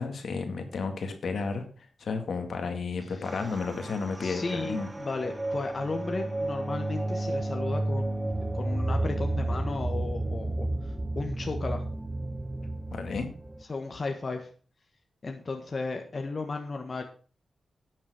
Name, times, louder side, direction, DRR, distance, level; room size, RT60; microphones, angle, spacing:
voice 1, 0.0-4.9 12.9-13.3, left 4 dB, 70° left, 6 dB, 2.1 m, -32 dB
voice 2, 3.1-3.4 4.2-11.8 13.7-14.5 15.2-17.0, left 3 dB, 40° left, 4 dB, 1.4 m, -35 dB
sound 1, 3.2-13.6, right 2 dB, 15° right, 0.9 m, -32 dB
11.5 x 7.3 x 5.1 m, 0.40 s
cardioid pair, 90°, 0 cm